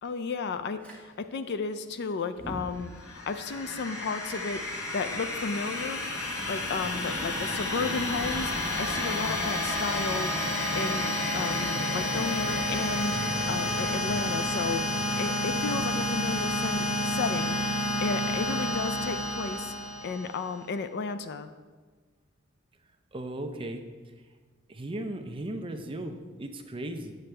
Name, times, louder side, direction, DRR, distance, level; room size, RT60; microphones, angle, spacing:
voice 1, 0.0-4.6 4.9-6.0 6.5-10.4 10.7-11.1 11.3-13.2 13.5-14.9 15.2-19.7 20.0-21.5, left 4 dB, 55° left, 10 dB, 0.4 m, -33 dB
Fire, 0.8-1.0 2.2-11.3, right 1 dB, 5° left, 1.6 m, -44 dB
sound 1, 2.9-20.5, left 1 dB, 80° left, 1.2 m, -30 dB
voice 2, 23.1-23.8 24.7-27.1, right 1 dB, 25° right, 6 dB, 0.5 m, -36 dB
8.2 x 7.8 x 3.3 m, 1.4 s
head